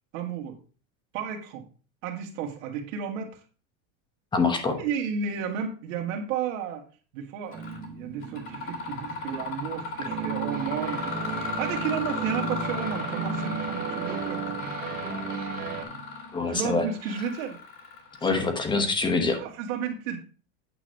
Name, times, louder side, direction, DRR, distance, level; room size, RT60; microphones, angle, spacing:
voice 1, 0.1-0.6 1.1-1.6 2.0-3.4 4.8-6.8 7.1-14.6 15.8-16.1 16.5-17.6 19.4-20.2, right 7 dB, 70° right, 3 dB, 2.0 m, -33 dB
voice 2, 4.3-4.8 16.3-16.9 18.2-19.4, left 4 dB, 10° left, 6 dB, 0.9 m, -25 dB
Mechanisms, 7.5-7.9 8.2-18.8, left 4 dB, 30° left, 2.3 m, -36 dB
sound 1, 7.5-15.8, right 6 dB, 20° right, 1.1 m, -35 dB
8.9 x 3.0 x 6.5 m, 0.36 s
supercardioid pair, 155°, 40 cm